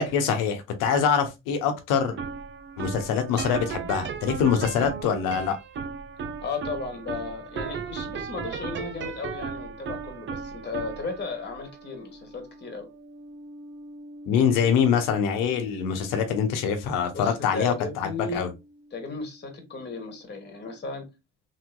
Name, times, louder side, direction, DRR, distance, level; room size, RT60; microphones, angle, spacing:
voice 1, 0.0-2.2 2.8-5.6 14.3-18.5, left 7 dB, 80° left, 1.0 m, -24 dB
sound 1, 2.0-19.2, right 5 dB, 35° right, 0.6 m, -38 dB
voice 2, 6.4-12.9 17.1-18.5 18.9-21.1, left 4 dB, 30° left, 1.4 m, -35 dB
3.2 x 3.1 x 2.2 m
supercardioid pair, 85°, 32 cm